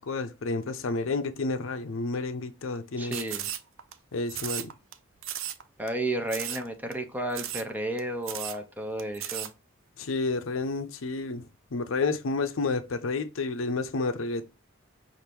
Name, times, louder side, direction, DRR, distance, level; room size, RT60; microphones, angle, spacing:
voice 1, 0.0-3.1 4.1-4.7 10.0-11.4 11.7-14.4, left 3 dB, 70° left, 0.5 m, -30 dB
voice 2, 3.0-3.5 5.8-9.5, right 1 dB, 10° right, 0.6 m, -32 dB
sound 1, 3.1-3.9 4.3-4.9 5.2-5.6 5.9-6.0 6.3-6.7 6.9-7.0 7.3-7.7 8.0-8.1 8.2-8.6 9.0-9.5, right 11 dB, 70° right, 0.5 m, -35 dB
5.8 x 2.5 x 3.4 m
head